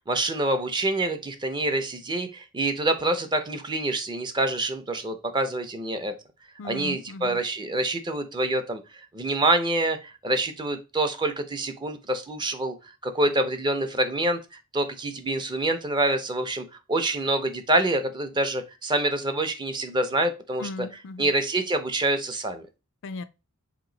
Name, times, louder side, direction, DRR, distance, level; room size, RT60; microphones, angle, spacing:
voice 1, 0.1-6.1 6.6-8.8 9.1-12.7 13.0-20.7 21.2-22.6, right 2 dB, 20° right, 0.6 m, -26 dB
voice 2, 6.6-7.4 20.6-21.3 23.0-23.2, left 3 dB, 60° left, 0.4 m, -37 dB
3.9 x 3.0 x 3.7 m
head